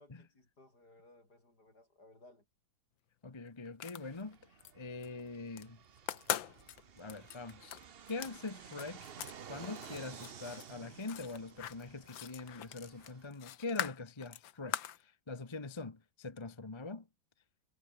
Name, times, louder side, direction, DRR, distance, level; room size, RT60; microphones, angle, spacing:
voice 1, 0.0-2.4, left 2 dB, 55° left, 8.6 m, -61 dB
voice 2, 3.2-5.8 7.0-7.8 8.1-9.1 9.5-17.1, left 3 dB, 20° left, 0.9 m, -43 dB
sound 1, 3.7-4.7 5.0-5.7 6.0-9.4 9.6-15.0, left 11 dB, 85° left, 1.8 m, -42 dB
Fixed-wing aircraft airplane, 4.0-13.3, right 8 dB, 50° right, 0.7 m, -53 dB
omnidirectional pair, 2.1 m